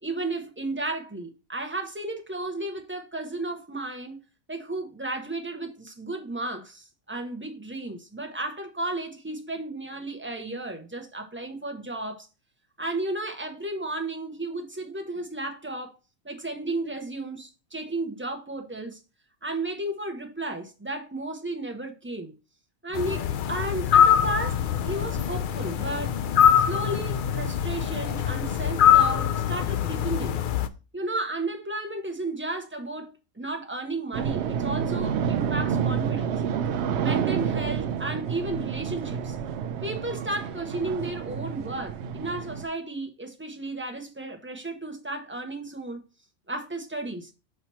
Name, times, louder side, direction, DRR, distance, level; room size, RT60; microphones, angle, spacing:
voice 1, 0.0-4.2 4.5-12.3 12.8-15.9 16.2-19.0 19.4-22.3 22.8-26.1 26.6-30.4 30.9-36.3 37.0-39.4 39.8-46.0 46.5-47.3, right 2 dB, 10° right, 0.7 m, -33 dB
sound 1, 22.9-30.7, left 9 dB, 75° left, 0.4 m, -23 dB
sound 2, 34.1-42.7, right 7 dB, 65° right, 0.8 m, -29 dB
6.5 x 2.9 x 5.5 m
omnidirectional pair, 1.4 m